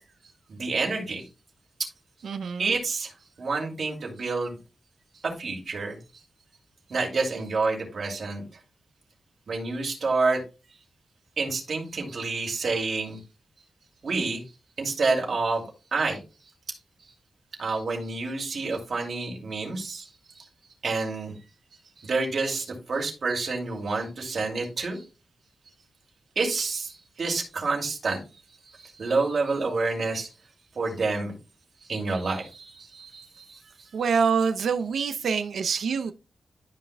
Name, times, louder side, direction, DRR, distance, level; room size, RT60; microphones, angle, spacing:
voice 1, 0.5-1.2 2.6-3.1 3.4-4.5 5.4-6.0 6.9-8.4 9.5-10.4 11.4-13.2 14.0-14.4 14.8-15.6 15.9-16.2 17.6-20.1 20.8-21.4 22.0-25.0 26.4-26.9 27.2-28.2 28.8-30.3 30.8-31.3 31.9-33.6, right 3 dB, 55° right, 2.5 m, -28 dB
voice 2, 2.2-2.7 33.9-36.1, right 6 dB, 85° right, 0.6 m, -25 dB
12.0 x 5.6 x 2.2 m
wide cardioid pair, 105°, 0 cm